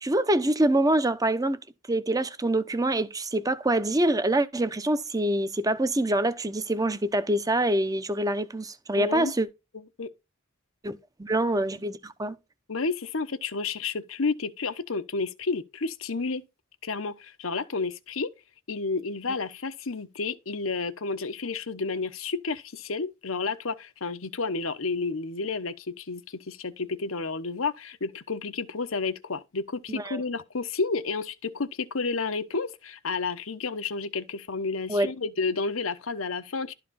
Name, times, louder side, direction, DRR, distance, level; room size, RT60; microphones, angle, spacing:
voice 1, 0.0-1.6 1.9-9.5 10.8-12.4 29.9-30.2 34.9-35.1, right 1 dB, 20° right, 0.8 m, -25 dB
voice 2, 9.0-9.3 9.7-10.1 12.7-16.4 16.8-18.3 18.7-36.7, left 4 dB, 85° left, 1.0 m, -31 dB
12.0 x 4.9 x 4.2 m
head